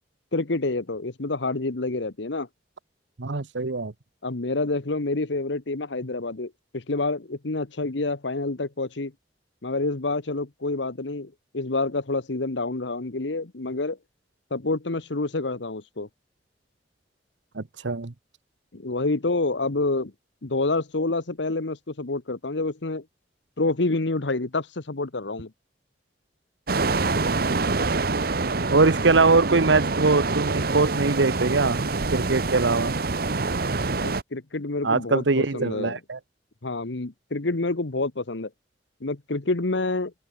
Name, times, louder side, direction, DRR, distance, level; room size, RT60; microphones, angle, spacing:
voice 1, 0.3-2.5 4.2-9.1 9.6-14.0 14.5-16.1 18.7-20.1 20.4-23.0 23.6-25.5 34.0-36.0 36.6-38.5 39.0-40.1, left 2 dB, 80° left, 1.3 m, -28 dB
voice 2, 3.2-3.9 17.5-18.1 28.7-31.8 32.1-32.9 34.8-36.2, right 3 dB, 80° right, 1.0 m, -22 dB
sound 1, 26.7-34.2, right 3 dB, 55° right, 1.1 m, -26 dB
open air
head